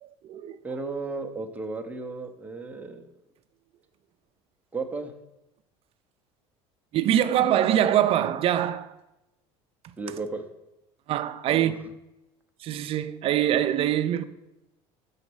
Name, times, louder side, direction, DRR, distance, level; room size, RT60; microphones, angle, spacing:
voice 1, 0.0-0.6 6.9-8.9 11.1-11.7 12.6-14.2, right 11 dB, 45° right, 0.5 m, -24 dB
voice 2, 0.6-3.1 4.7-5.1 10.0-10.4 11.5-11.7, right 3 dB, 10° right, 0.7 m, -34 dB
6.5 x 4.0 x 6.2 m
cardioid pair, 130°, 14 cm